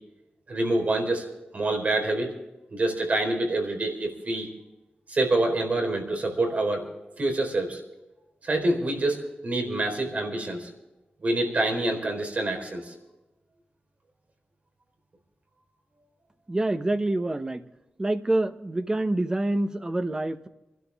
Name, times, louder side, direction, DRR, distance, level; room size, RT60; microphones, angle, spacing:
voice 1, 0.5-1.2 1.5-2.3 2.7-4.5 5.1-6.9 7.2-7.8 8.4-9.2 9.4-10.7 11.2-12.9, right 2 dB, 45° right, 2 dB, 4.1 m, -26 dB
voice 2, 16.5-17.6 18.0-20.5, right 1 dB, 20° right, 9 dB, 0.9 m, -26 dB
25.5 x 12.5 x 3.5 m, 0.99 s
wide cardioid pair, 150°, 4 cm